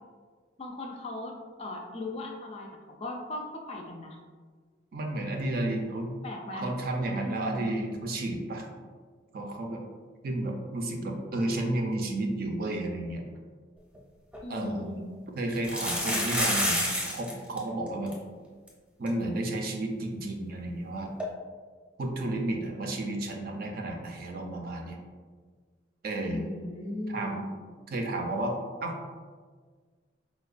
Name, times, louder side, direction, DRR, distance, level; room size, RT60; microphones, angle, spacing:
voice 1, 0.6-2.7 3.0-4.2 6.2-6.7 7.2-7.7 14.4-15.0 26.3-27.4, left 1 dB, 35° left, 1 dB, 0.4 m, -37 dB
voice 2, 4.9-6.1 6.5-8.7 9.3-9.8 10.2-13.3 14.5-18.1 19.0-21.1 22.0-25.0 26.0-26.4 27.1-27.5 27.9-28.6 28.8-29.0, right 1 dB, 50° right, 2 dB, 0.4 m, -32 dB
sound 1, 13.9-14.0 14.3-14.4 15.5-17.3 17.6-17.7 17.9-18.1 18.7-18.8 19.1-19.2 21.2-21.3, equal, 5° right, 0.7 m, -28 dB
4.7 x 2.1 x 2.4 m, 1.6 s
head